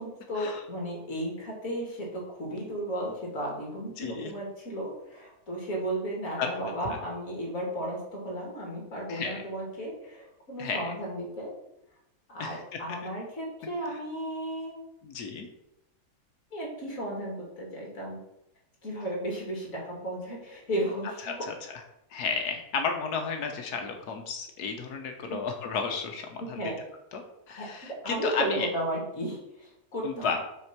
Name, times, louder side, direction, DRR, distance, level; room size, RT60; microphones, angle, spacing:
voice 1, 0.0-11.5 12.3-14.8 16.5-18.2 18.8-21.4 25.3-25.4 26.4-26.7 27.6-30.3, right 1 dB, 60° left, -2 dB, 2.8 m, -34 dB
voice 2, 4.0-4.3 6.4-7.0 9.1-9.4 10.6-11.0 12.4-12.8 13.8-14.0 15.0-15.5 21.2-21.8 22.1-26.7 27.1-28.7 30.0-30.4, left 5 dB, 85° left, 4 dB, 1.5 m, -33 dB
6.1 x 4.4 x 6.0 m, 0.84 s
omnidirectional pair, 1.6 m